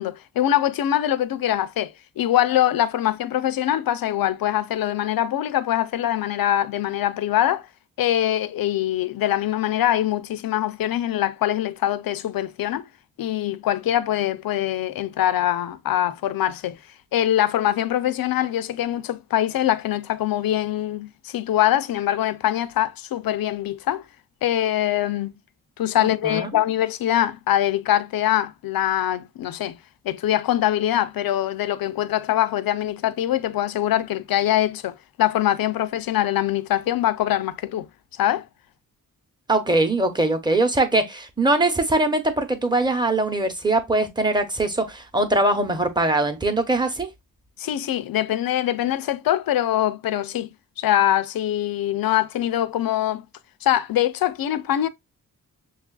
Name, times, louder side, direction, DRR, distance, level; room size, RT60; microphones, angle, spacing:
voice 1, 0.0-7.7 8.0-12.8 13.2-16.8 17.1-24.0 24.4-25.3 25.8-29.8 30.0-37.9 38.2-38.4 47.6-50.5 50.8-53.2 53.6-54.9, left 12 dB, 90° left, 0.5 m, -23 dB
voice 2, 26.0-26.5 39.5-47.1, right 2 dB, 15° right, 0.8 m, -22 dB
6.4 x 2.4 x 2.2 m
wide cardioid pair, 85°, 34 cm